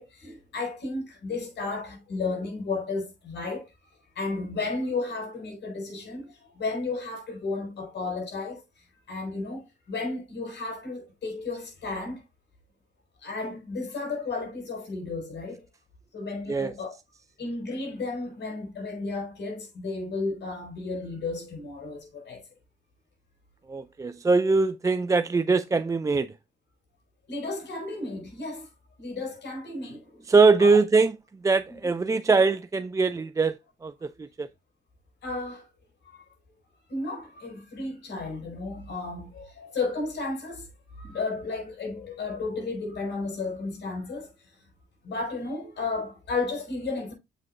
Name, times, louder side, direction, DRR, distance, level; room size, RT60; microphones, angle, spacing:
voice 1, 0.0-3.7 4.1-12.2 13.2-15.7 16.1-17.0 17.4-22.5 27.3-28.7 29.0-30.3 30.6-30.8 35.2-35.7 36.1-36.2 36.9-40.7 41.0-44.5 45.0-47.1, left 3 dB, 60° left, 4.9 m, -33 dB
voice 2, 23.7-26.3 30.3-31.1 31.4-34.5, right 4 dB, 15° right, 0.3 m, -22 dB
7.8 x 6.0 x 2.5 m
cardioid pair, 90°, 20 cm